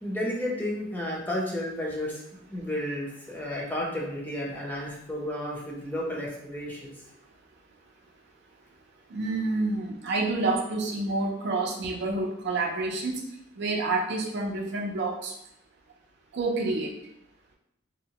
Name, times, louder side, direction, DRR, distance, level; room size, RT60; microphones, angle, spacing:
voice 1, 0.0-2.2 2.5-6.9, left 1 dB, 10° left, -4 dB, 0.6 m, -32 dB
voice 2, 9.1-13.2 13.6-15.3 16.3-16.9, right 3 dB, 60° right, 0 dB, 0.5 m, -28 dB
2.7 x 2.1 x 2.8 m, 0.78 s
head